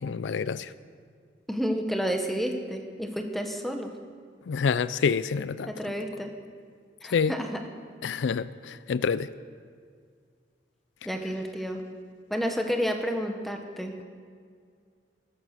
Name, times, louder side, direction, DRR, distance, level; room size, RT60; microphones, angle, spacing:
voice 1, 0.0-0.7 4.5-5.7 7.1-7.3 8.0-9.3, left 6 dB, 80° left, 16 dB, 0.4 m, -27 dB
voice 2, 1.5-3.9 5.7-6.3 7.0-7.6 11.0-11.8 12.3-14.0, equal, ahead, 4 dB, 1.1 m, -30 dB
14.0 x 12.0 x 6.6 m, 2.1 s
head